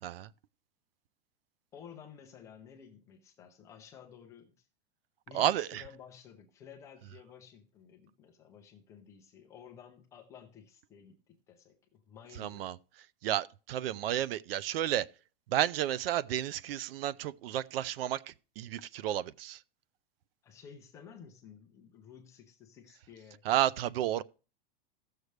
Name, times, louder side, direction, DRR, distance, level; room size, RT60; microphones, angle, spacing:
voice 1, 1.7-4.7 5.3-12.7 20.4-23.4 23.8-23.9, left 7 dB, 10° left, 0.4 m, -53 dB
voice 2, 5.3-5.7 12.4-12.7 13.2-15.0 15.5-18.2 18.6-19.6 23.5-24.2, right 12 dB, 65° right, 0.5 m, -31 dB
16.0 x 6.6 x 3.2 m
supercardioid pair, 175°, 31 cm